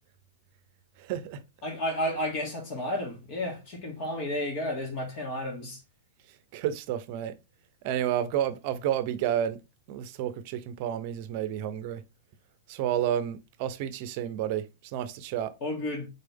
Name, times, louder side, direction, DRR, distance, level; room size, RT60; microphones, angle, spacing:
voice 1, 1.0-1.4 6.5-7.4 7.8-9.6 9.9-12.0 12.7-15.5, right 10 dB, 50° right, 0.7 m, -30 dB
voice 2, 1.6-5.8 15.6-16.1, left 1 dB, 45° left, 2.1 m, -32 dB
4.0 x 3.3 x 3.5 m
hypercardioid pair, 130°, 0 cm